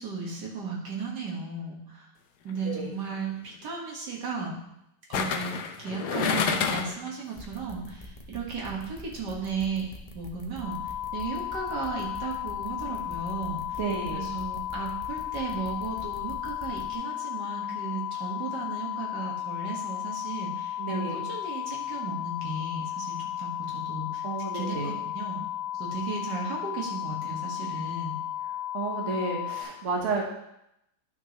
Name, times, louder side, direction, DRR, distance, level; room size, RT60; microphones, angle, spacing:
voice 1, 0.0-2.1 2.4-4.6 5.1-9.9 10.1-10.8 11.1-13.8 14.1-24.2 24.5-25.5 25.7-28.2, right 4 dB, 70° right, -2 dB, 2.3 m, -35 dB
sound 1, 2.5-2.8 5.1-7.1 7.4-7.5, left 6 dB, 70° left, 1.2 m, -29 dB
sound 2, 7.3-16.9, left 1 dB, 30° left, 0.6 m, -45 dB
sound 3, 10.6-29.6, left 12 dB, 10° right, 2.0 m, -34 dB
voice 2, 13.8-14.2 20.8-21.3 24.2-24.9 28.7-30.2, right 4 dB, 45° right, -1 dB, 1.4 m, -31 dB
11.5 x 6.2 x 3.1 m, 0.82 s
omnidirectional pair, 1.9 m